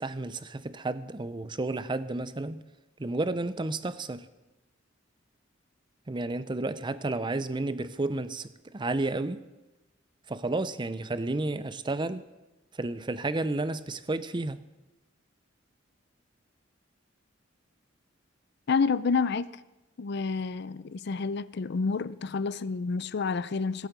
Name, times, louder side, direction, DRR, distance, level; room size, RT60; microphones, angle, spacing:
voice 1, 0.0-2.6 3.0-4.3 6.1-9.4 10.3-12.2 12.8-14.6, right 2 dB, 25° right, 0.5 m, -31 dB
voice 2, 18.7-19.5 20.0-23.9, left 4 dB, 55° left, 0.5 m, -29 dB
16.5 x 8.4 x 8.1 m
head